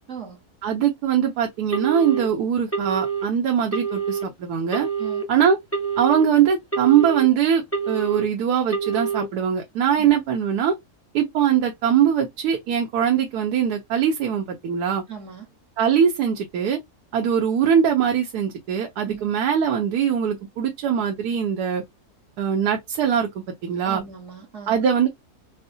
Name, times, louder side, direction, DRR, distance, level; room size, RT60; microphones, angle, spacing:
voice 1, 0.1-0.4 5.0-5.2 10.0-10.1 15.1-15.5 19.0-19.3 23.8-24.8, right 7 dB, 55° right, 1.4 m, -38 dB
voice 2, 0.6-4.9 5.3-5.6 6.0-10.7 11.1-15.0 15.8-16.8 17.1-21.8 22.4-23.3 23.6-24.0 24.7-25.1, right 8 dB, 90° right, 1.2 m, -21 dB
Telephone, 1.7-2.2 2.7-3.2 3.7-4.2 4.7-5.2 5.7-6.2 6.7-7.2 7.7-8.2 8.7-9.2, right 6 dB, 15° left, 0.4 m, -26 dB
4.5 x 2.1 x 2.6 m
omnidirectional pair, 1.6 m